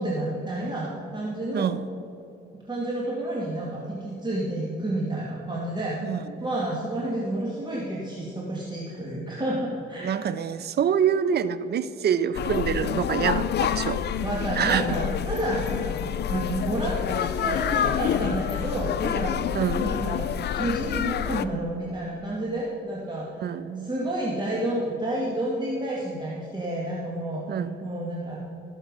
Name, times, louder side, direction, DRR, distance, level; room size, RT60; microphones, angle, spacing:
voice 1, 0.0-1.7 2.6-6.0 6.4-10.3 14.2-19.5 19.7-20.3 20.5-28.4, right 1 dB, 20° right, -5 dB, 2.2 m, -30 dB
voice 2, 1.5-1.9 6.0-6.2 10.0-14.0 14.5-14.9 19.5-20.1 23.4-23.9 27.5-27.8, right 8 dB, 55° right, 14 dB, 0.6 m, -26 dB
sound 1, 12.3-21.4, left 9 dB, 60° left, 0.6 m, -27 dB
17.0 x 7.3 x 5.4 m, 2.8 s
cardioid pair, 90°, 20 cm